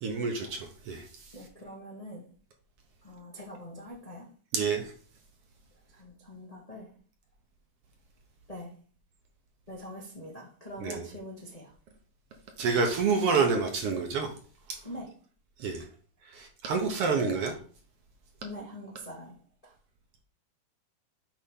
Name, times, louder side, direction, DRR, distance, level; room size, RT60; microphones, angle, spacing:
voice 1, 0.0-1.3 4.5-4.9 10.8-11.1 12.6-14.3 14.7-14.8 15.6-15.8 16.2-17.6, right 5 dB, 65° right, 1.7 m, -28 dB
voice 2, 1.3-2.3 3.0-4.3 5.9-6.9 8.5-8.7 9.7-11.7 14.8-15.1 18.4-19.7, equal, 30° left, 0.6 m, -44 dB
8.4 x 3.4 x 5.2 m
omnidirectional pair, 3.3 m